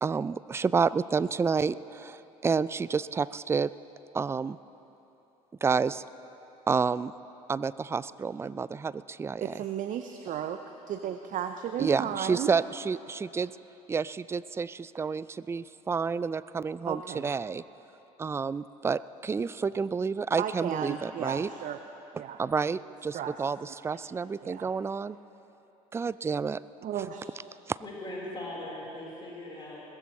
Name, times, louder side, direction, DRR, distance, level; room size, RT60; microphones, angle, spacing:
voice 1, 0.0-3.7 4.1-4.6 5.6-6.0 6.7-7.1 7.5-9.5 11.8-13.5 13.9-17.6 18.2-21.5 22.4-25.2 25.9-26.6 27.7-27.8, right 5 dB, 15° right, 17 dB, 0.3 m, -29 dB
voice 2, 9.4-10.6 10.9-12.5 16.9-17.3 20.4-21.8 22.1-22.4 23.1-23.4 24.4-24.7 26.8-27.3, right 9 dB, 45° right, 7 dB, 0.7 m, -34 dB
voice 3, 27.8-29.8, left 1 dB, 25° left, -5 dB, 4.0 m, -39 dB
21.5 x 15.0 x 3.1 m, 3.0 s
figure-of-eight pair, 60°, 19 cm